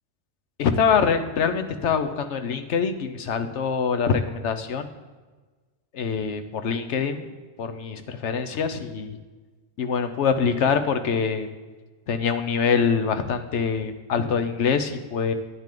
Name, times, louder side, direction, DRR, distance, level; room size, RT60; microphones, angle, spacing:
voice 1, 0.6-4.9 5.9-7.3 7.6-9.2 9.8-11.5 12.1-15.3, left 6 dB, 80° left, 9 dB, 1.1 m, -24 dB
10.5 x 9.6 x 3.8 m, 1.3 s
omnidirectional pair, 1.2 m